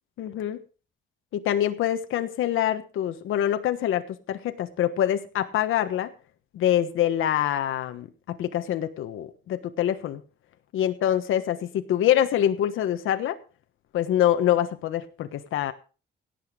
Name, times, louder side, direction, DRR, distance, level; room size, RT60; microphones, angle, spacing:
voice 1, 0.2-0.6 1.3-6.1 6.5-10.2 10.7-13.4 13.9-15.7, left 11 dB, 90° left, 9 dB, 1.3 m, -25 dB
17.5 x 8.1 x 5.2 m, 0.36 s
cardioid pair, 170°, 20 cm